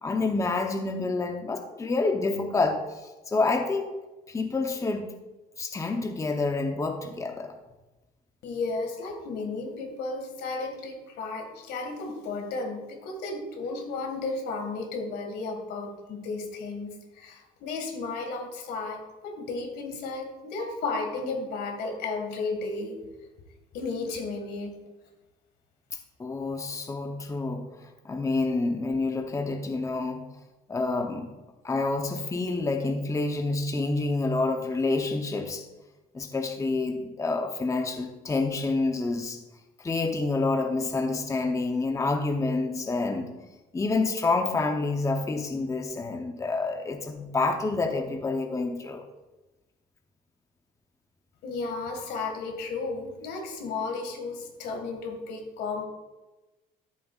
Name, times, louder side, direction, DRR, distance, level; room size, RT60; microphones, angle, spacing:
voice 1, 0.0-3.9 4.3-5.1 5.6-7.5 26.2-30.2 30.7-31.3 31.6-35.6 36.1-39.4 39.8-43.3 43.7-49.0, left 3 dB, 20° left, 4 dB, 0.8 m, -28 dB
voice 2, 8.4-23.0 23.7-24.8 51.4-55.8, left 3 dB, 75° left, 4 dB, 1.9 m, -33 dB
12.5 x 7.5 x 2.4 m, 1.1 s
cardioid pair, 110°, 17 cm